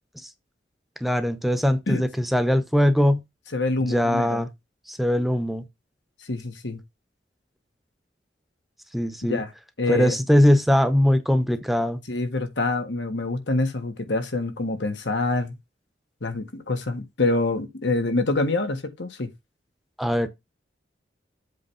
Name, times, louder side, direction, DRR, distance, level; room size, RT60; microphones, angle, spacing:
voice 1, 1.0-3.2 3.8-4.5 4.9-5.7 8.9-9.4 9.9-12.0 20.0-20.3, equal, ahead, 0.6 m, -21 dB
voice 2, 3.5-4.4 6.3-6.8 9.3-9.5 9.8-10.1 12.1-15.5 16.2-19.3, left 2 dB, 90° left, 1.5 m, -26 dB
7.7 x 3.3 x 5.6 m
head